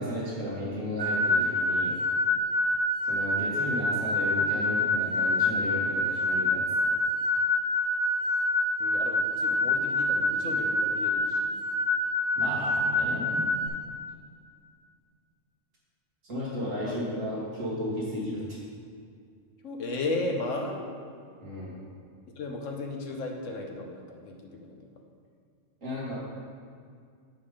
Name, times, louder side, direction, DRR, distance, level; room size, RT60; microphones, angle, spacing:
voice 1, 0.0-1.9 3.0-6.6 12.4-13.5 16.2-18.4 21.4-21.8 25.8-26.1, equal, 80° right, -8 dB, 2.7 m, -34 dB
sound 1, 1.0-13.7, left 1 dB, 35° left, 2.3 m, -26 dB
voice 2, 8.8-11.5 16.8-17.0 19.6-20.8 22.4-24.9, left 2 dB, 75° left, 2 dB, 1.3 m, -35 dB
9.6 x 5.5 x 5.1 m, 2.2 s
omnidirectional pair, 1.3 m